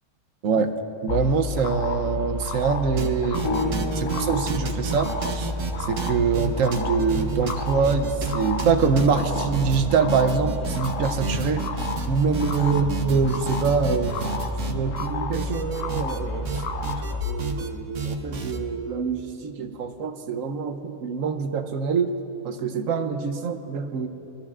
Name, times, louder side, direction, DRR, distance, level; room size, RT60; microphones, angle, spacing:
voice 1, 0.4-0.7 1.0-5.5 5.8-11.6 12.1-14.2 14.6-16.6 17.2-22.2 22.4-24.1, right 5 dB, 70° right, 7 dB, 1.0 m, -25 dB
sound 1, 1.1-17.2, left 1 dB, 65° left, 1.1 m, -30 dB
sound 2, 3.0-3.1 3.3-15.1 15.3-16.2 16.4-17.7 17.9-18.6, right 5 dB, 85° right, 1.5 m, -32 dB
sound 3, 3.4-13.7 14.6-14.7 15.5-15.6, left 2 dB, 40° left, 2.9 m, -38 dB
23.0 x 13.0 x 2.4 m, 2.7 s
omnidirectional pair, 1.5 m